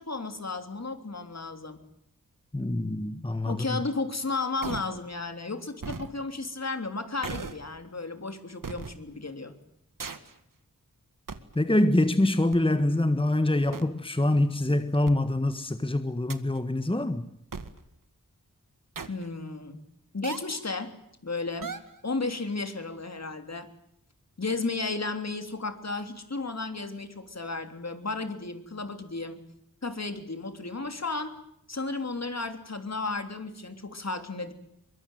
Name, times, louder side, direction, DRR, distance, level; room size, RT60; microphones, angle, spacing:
voice 1, 0.0-1.8 3.4-9.5 19.1-19.8 20.1-20.9 21.2-21.7 22.0-23.7 24.4-29.4 29.8-31.3 31.7-34.5, left 3 dB, 50° left, 3.3 m, -33 dB
voice 2, 2.5-3.8 11.5-17.2, left 1 dB, 15° left, 1.5 m, -25 dB
sound 1, 4.6-4.9 5.8-6.1 7.2-7.7 8.6-8.9 10.0-10.3 11.3-11.5 12.5-12.6 13.7-13.8 15.1-15.2 16.3-16.6 17.5-17.8 18.9-19.3 20.2-20.6 21.6-22.0, right 5 dB, 70° right, 2.0 m, -36 dB
24.0 x 22.5 x 9.3 m
cardioid pair, 50°, 34 cm